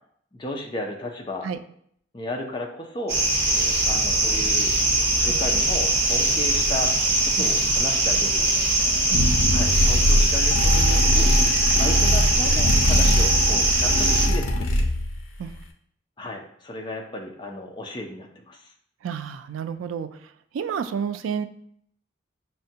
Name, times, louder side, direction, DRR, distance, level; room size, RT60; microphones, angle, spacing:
voice 1, 0.3-1.5 2.1-3.2 3.8-4.7 5.2-6.9 7.2-8.5 9.5-11.4 11.8-14.7 16.2-18.6, left 1 dB, 25° left, 2 dB, 0.5 m, -34 dB
sound 1, 3.1-14.3, right 2 dB, 55° right, 1.0 m, -21 dB
voice 2, 7.4-7.8 9.1-9.3 15.4-15.5 19.0-21.5, right 7 dB, 85° right, 11 dB, 0.3 m, -31 dB
sound 2, 9.1-15.2, left 1 dB, 85° left, 0.5 m, -21 dB
5.6 x 2.2 x 2.7 m, 0.67 s
head